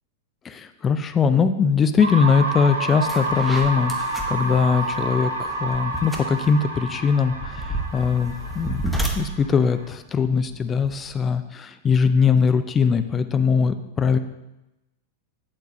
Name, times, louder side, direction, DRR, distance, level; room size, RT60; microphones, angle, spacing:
voice 1, 0.4-8.8 9.2-14.2, left 6 dB, 20° left, 10 dB, 0.5 m, -21 dB
sound 1, 2.0-9.9, right 2 dB, 70° right, 1.4 m, -29 dB
sound 2, 2.4-2.5 2.9-11.2, right 1 dB, ahead, 1.0 m, -33 dB
8.8 x 8.0 x 2.7 m, 0.94 s
figure-of-eight pair, 95°, 0 cm